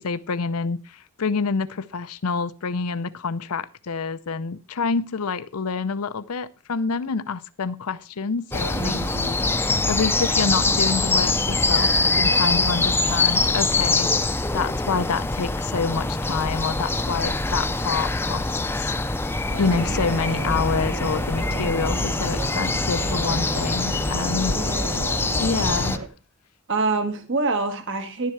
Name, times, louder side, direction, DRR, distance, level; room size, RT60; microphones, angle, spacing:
voice 1, 0.0-9.0 9.4-9.6 9.9-14.1 14.5-19.1 19.6-24.6 25.4-26.0, left 5 dB, 85° left, 14 dB, 0.6 m, -27 dB
sound 1, 8.5-26.0, left 3 dB, 10° left, 0.6 m, -24 dB
voice 2, 8.7-9.4 24.5-25.3 26.7-28.3, right 3 dB, 60° right, 7 dB, 1.6 m, -27 dB
sound 2, 19.5-26.1, right 2 dB, 85° right, 1.3 m, -34 dB
11.0 x 10.5 x 4.6 m, 0.35 s
head